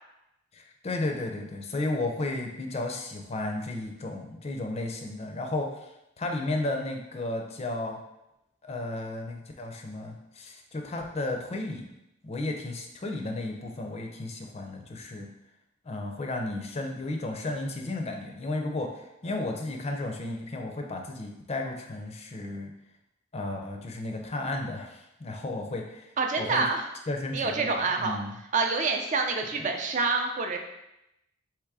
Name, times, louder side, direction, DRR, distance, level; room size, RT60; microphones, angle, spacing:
voice 1, 0.5-5.7 6.2-8.0 8.6-11.8 12.2-15.3 15.9-18.9 19.2-22.7 23.3-26.0 26.4-26.7 27.1-28.4, left 2 dB, 30° left, 3 dB, 0.5 m, -33 dB
voice 2, 26.2-26.9 27.3-28.2 28.5-30.6, right 4 dB, 40° right, 4 dB, 0.4 m, -27 dB
3.6 x 3.0 x 4.7 m, 0.87 s
head